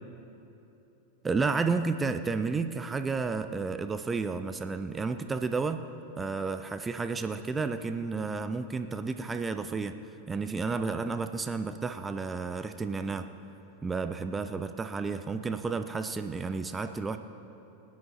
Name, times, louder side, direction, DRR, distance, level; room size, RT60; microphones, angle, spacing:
voice 1, 1.2-5.8 6.2-10.0 10.3-13.3 13.8-17.2, right 4 dB, 15° right, 9 dB, 0.5 m, -31 dB
19.5 x 9.4 x 4.3 m, 3.0 s
figure-of-eight pair, 90°, 0 cm